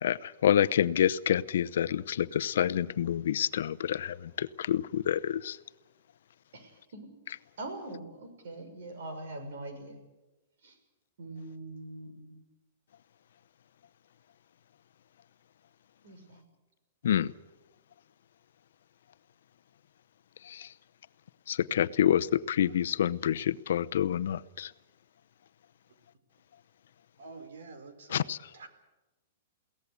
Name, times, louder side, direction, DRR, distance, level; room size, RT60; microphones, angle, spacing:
voice 1, 0.0-5.6 17.0-17.3 20.5-20.7 21.5-24.7 28.1-28.4, left 10 dB, 65° left, 14 dB, 0.8 m, -27 dB
voice 2, 6.5-7.1 7.6-10.0 10.6-10.7 11.2-12.4 16.0-16.4, right 2 dB, 60° right, 7 dB, 6.3 m, -42 dB
voice 3, 27.2-28.3 28.5-28.7, right 3 dB, 90° right, 9 dB, 4.0 m, -47 dB
22.5 x 17.5 x 8.3 m, 1.0 s
hypercardioid pair, 180°, 0 cm